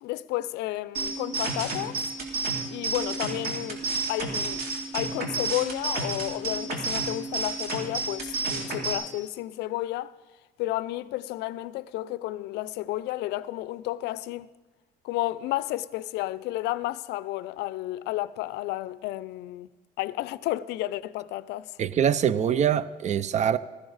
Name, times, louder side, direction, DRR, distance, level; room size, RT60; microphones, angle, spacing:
voice 1, 0.0-2.0 2.7-3.8 4.1-4.6 4.9-10.1 10.6-14.5 15.0-19.7 20.0-21.7, left 16 dB, 85° left, 0.4 m, -32 dB
sound 1, 0.9-8.9, right 3 dB, 60° right, 2.7 m, -31 dB
voice 2, 21.8-23.6, right 9 dB, 45° right, 0.5 m, -24 dB
15.0 x 13.5 x 4.0 m
cardioid pair, 110°, 17 cm